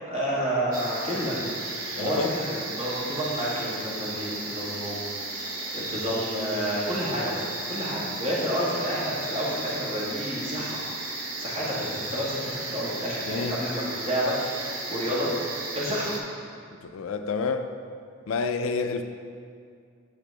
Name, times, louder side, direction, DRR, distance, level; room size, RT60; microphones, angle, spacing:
voice 1, 0.1-1.3 2.0-5.0 5.7-7.4 7.7-10.8 11.4-14.3 14.9-15.3 15.7-16.1, equal, 30° right, -7 dB, 1.7 m, -29 dB
sound 1, 0.7-16.2, right 2 dB, 75° right, 0.9 m, -34 dB
voice 2, 2.0-2.3 13.3-13.6 16.8-17.7 18.3-19.0, left 4 dB, 85° left, 8 dB, 0.4 m, -29 dB
6.7 x 5.9 x 3.4 m, 2.2 s
head